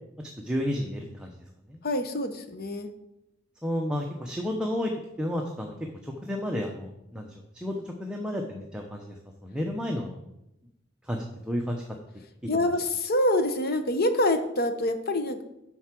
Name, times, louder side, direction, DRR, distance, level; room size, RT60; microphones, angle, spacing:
voice 1, 0.2-1.3 1.7-1.8 3.6-4.9 5.2-5.7 6.0-9.1 9.4-10.2 11.1-11.8, left 1 dB, 5° right, 1 dB, 0.7 m, -31 dB
voice 2, 1.8-2.9 12.5-15.4, left 1 dB, 45° left, 8 dB, 0.9 m, -26 dB
7.9 x 5.8 x 6.0 m, 0.87 s
head